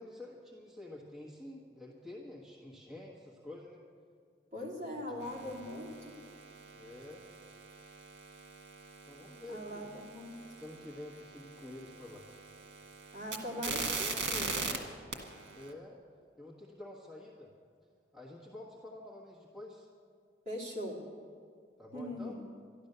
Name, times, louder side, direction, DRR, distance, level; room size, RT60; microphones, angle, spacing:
voice 1, 0.0-3.8 4.5-5.6 6.7-7.2 9.1-9.9 10.6-12.3 13.5-14.9 15.6-16.0 16.4-17.5 18.1-19.9 21.8-22.4, left 1 dB, ahead, -5 dB, 1.4 m, -49 dB
voice 2, 4.5-6.1 9.5-10.3 13.1-14.6 20.4-21.0 21.9-22.4, left 1 dB, 35° right, -4 dB, 3.0 m, -41 dB
sound 1, 5.2-14.8 15.1-15.7, right 4 dB, 85° right, 1.7 m, -42 dB
12.5 x 12.0 x 6.7 m, 2.2 s
head